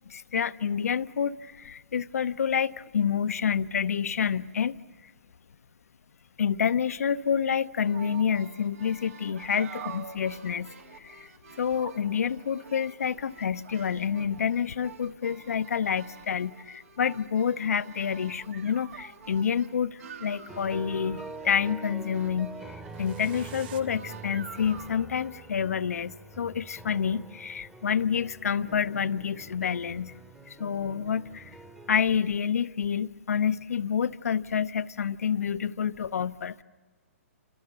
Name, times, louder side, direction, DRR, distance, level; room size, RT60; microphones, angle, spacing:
voice 1, 0.1-4.8 6.4-11.3 11.6-30.1 30.5-31.6 31.9-36.6, left 7 dB, 75° left, 0.8 m, -28 dB
sound 1, 7.8-24.9, right 7 dB, 65° right, 2.4 m, -48 dB
sound 2, 17.6-17.7 18.9-20.0 22.8-23.8, right 11 dB, 40° right, 1.1 m, -50 dB
sound 3, 20.5-32.0, right 3 dB, 5° right, 1.2 m, -45 dB
29.5 x 27.0 x 6.9 m
hypercardioid pair, 140°, 8 cm